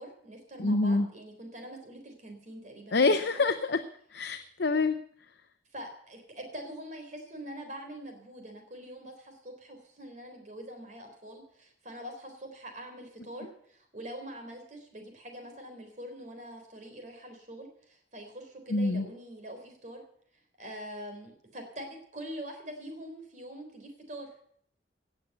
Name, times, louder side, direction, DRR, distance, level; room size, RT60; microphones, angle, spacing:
voice 1, 0.0-3.2 5.7-20.0 20.6-24.3, equal, 45° right, 4 dB, 3.7 m, -44 dB
voice 2, 0.6-1.1 2.9-3.8 4.1-5.0 18.7-19.1, left 3 dB, 65° left, 8 dB, 0.7 m, -26 dB
17.5 x 6.9 x 7.9 m, 0.63 s
head